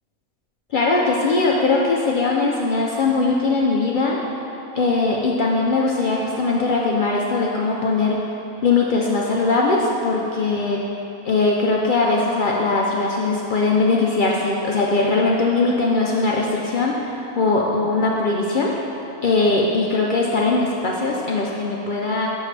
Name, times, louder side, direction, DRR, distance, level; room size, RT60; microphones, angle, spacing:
voice 1, 0.7-4.2 4.7-8.2 8.6-10.8 11.2-18.9 19.2-22.3, left 3 dB, 75° left, -2 dB, 0.4 m, -20 dB
7.9 x 6.5 x 3.2 m, 2.9 s
omnidirectional pair, 1.5 m